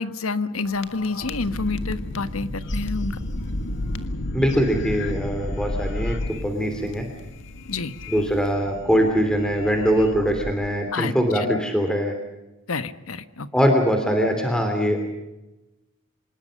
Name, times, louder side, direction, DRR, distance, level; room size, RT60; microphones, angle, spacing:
voice 1, 0.0-3.2 7.7-7.9 10.9-11.6 12.7-13.5, left 3 dB, 85° left, 13 dB, 1.2 m, -28 dB
sound 1, 0.7-10.5, left 1 dB, 60° left, 1.8 m, -32 dB
voice 2, 4.3-7.1 8.1-12.1 13.5-15.0, equal, 5° left, 4 dB, 3.1 m, -22 dB
26.0 x 20.5 x 6.5 m, 1.0 s
head